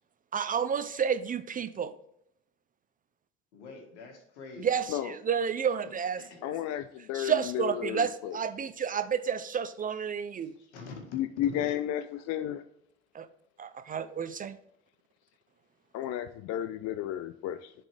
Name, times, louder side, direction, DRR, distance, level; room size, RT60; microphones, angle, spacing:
voice 1, 0.3-1.9 4.6-6.2 7.1-10.5 13.1-13.3 13.6-14.6, right 7 dB, 25° right, 12 dB, 0.4 m, -30 dB
voice 2, 3.5-4.9 6.2-6.4 10.4-11.6, left 4 dB, 80° left, 2 dB, 1.8 m, -46 dB
voice 3, 6.4-8.4 11.1-12.6 15.9-17.7, left 11 dB, 50° left, 10 dB, 0.5 m, -33 dB
10.5 x 4.2 x 3.3 m, 0.77 s
hypercardioid pair, 75°, 33 cm